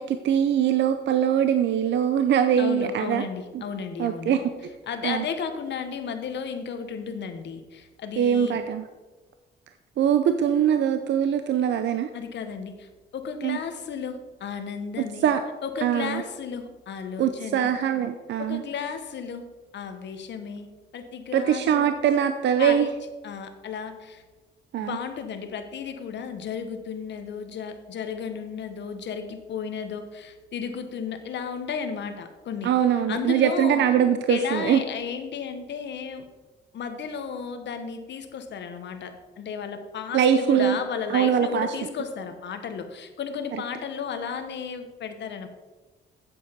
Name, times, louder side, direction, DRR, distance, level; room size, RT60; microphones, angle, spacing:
voice 1, 0.0-3.2 4.0-4.4 5.0-5.2 8.2-8.9 10.0-12.1 13.4-13.6 15.0-15.4 15.8-16.2 17.2-18.6 21.3-22.9 24.7-25.0 32.6-34.8 40.1-40.8 41.1-41.7 43.5-43.6, right 9 dB, 65° right, 9 dB, 0.6 m, -22 dB
voice 2, 2.6-4.5 4.9-8.6 12.1-15.3 15.6-17.7 18.4-19.4 19.7-20.7 20.9-21.9 22.6-22.9 23.2-24.2 24.8-32.7 33.1-33.8 34.3-36.2 36.7-45.5, left 6 dB, 65° left, 7 dB, 1.2 m, -34 dB
8.2 x 7.6 x 5.2 m, 1.2 s
cardioid pair, 90°, 20 cm